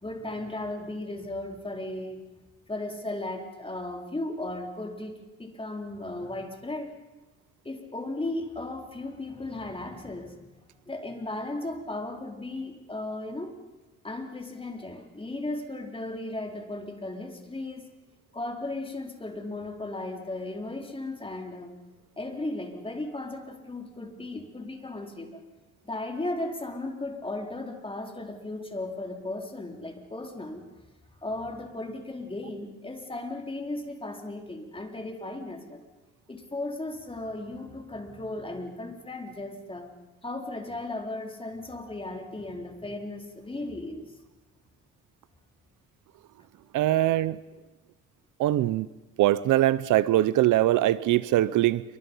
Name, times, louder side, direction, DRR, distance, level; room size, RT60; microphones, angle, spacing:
voice 1, 0.0-2.3 2.7-6.9 7.6-10.5 10.9-13.6 14.0-17.9 18.3-21.7 22.2-25.4 25.8-30.6 31.2-35.9 36.3-39.9 40.2-44.0, left 2 dB, 20° left, 3 dB, 4.2 m, -36 dB
voice 2, 46.7-47.4 48.4-48.9 49.2-51.8, right 14 dB, 80° right, 18 dB, 0.8 m, -22 dB
28.5 x 24.0 x 5.6 m, 1.1 s
cardioid pair, 90°, 30 cm